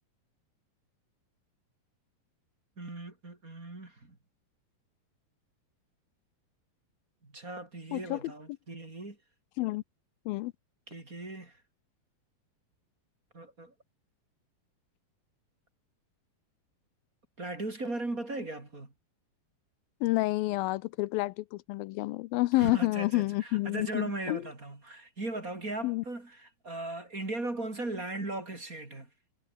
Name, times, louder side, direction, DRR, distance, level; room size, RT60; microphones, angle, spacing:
voice 1, 2.8-4.2 7.2-9.2 10.9-11.6 13.3-13.7 17.4-18.9 22.6-29.1, right 2 dB, 20° right, 4.1 m, -38 dB
voice 2, 20.0-24.4 25.8-26.0, left 20 dB, 80° left, 2.3 m, -29 dB
omnidirectional pair, 4.2 m